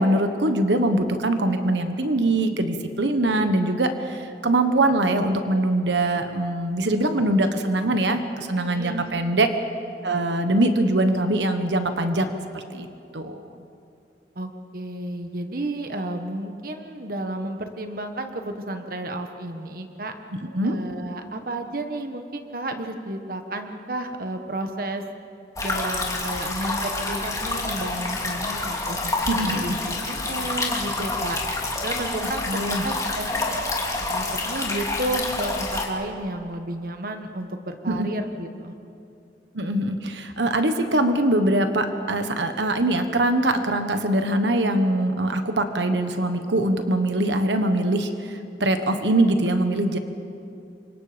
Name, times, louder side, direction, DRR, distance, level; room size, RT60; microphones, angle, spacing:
voice 1, 0.0-9.5 10.0-12.9 13.1-13.4 20.5-20.8 29.3-29.8 32.5-32.8 37.9-38.1 39.5-50.0, right 1 dB, 85° right, 7 dB, 1.4 m, -23 dB
voice 2, 8.7-9.2 14.3-20.1 20.6-25.0 25.6-31.4 31.8-33.6 34.1-38.8, right 1 dB, 55° right, 6 dB, 1.5 m, -32 dB
sound 1, 25.6-35.9, left 2 dB, 20° left, 2.8 m, -28 dB
29.0 x 25.5 x 5.2 m, 2.6 s
head